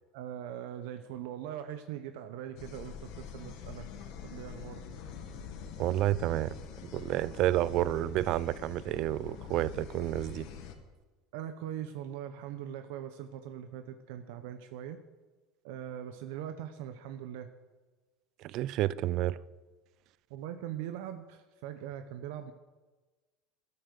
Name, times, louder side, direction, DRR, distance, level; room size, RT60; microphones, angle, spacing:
voice 1, 0.1-3.9 4.2-4.8 11.3-15.0 15.6-17.5 20.3-22.5, right 10 dB, 80° right, 0.8 m, -41 dB
sound 1, 2.6-10.8, left 7 dB, 65° left, 1.6 m, -45 dB
voice 2, 5.8-6.6 6.9-10.5 18.4-19.4, right 14 dB, 55° right, 0.4 m, -30 dB
11.5 x 9.6 x 6.8 m
supercardioid pair, 125°, 0 cm